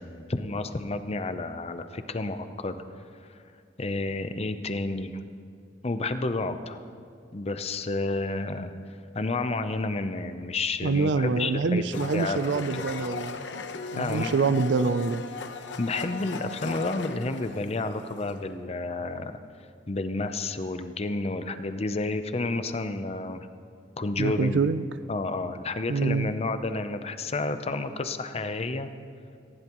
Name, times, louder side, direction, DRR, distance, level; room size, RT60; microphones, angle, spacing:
voice 1, 0.0-2.8 3.3-3.4 3.8-5.2 5.8-6.8 7.3-8.7 9.1-12.9 14.0-14.3 15.8-19.4 19.9-23.5 24.0-24.6 25.1-28.9, left 2 dB, 35° left, 9 dB, 0.7 m, -30 dB
voice 2, 10.8-13.4 13.9-15.2 24.2-24.8 25.9-26.3, right 4 dB, 75° right, 13 dB, 0.5 m, -26 dB
Domestic sounds home sounds, 11.9-18.5, left 5 dB, 85° left, 0.9 m, -38 dB
19.0 x 15.5 x 3.0 m, 2.3 s
head